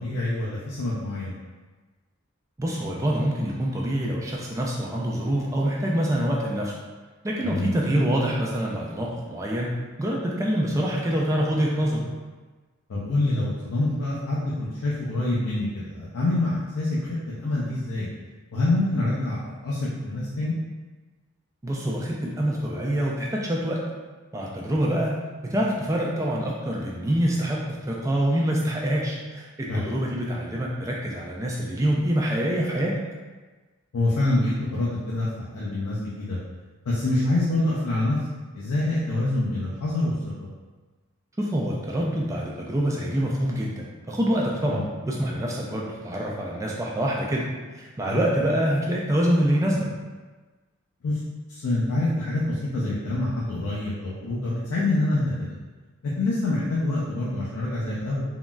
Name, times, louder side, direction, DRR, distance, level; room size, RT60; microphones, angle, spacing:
voice 1, 0.0-1.3 7.4-7.7 12.9-18.1 18.5-20.5 29.7-29.9 33.9-36.4 36.9-38.2 38.5-40.1 44.7-44.8 48.1-48.2 51.0-51.2 51.5-55.5 56.0-58.2, left 2 dB, 90° left, -7 dB, 0.5 m, -26 dB
voice 2, 2.6-6.7 7.2-9.7 10.0-12.0 21.6-23.8 24.3-25.2 25.4-32.9 41.4-47.5 47.7-49.9, right 1 dB, 15° right, -3 dB, 0.3 m, -25 dB
3.7 x 2.0 x 2.2 m, 1.3 s
head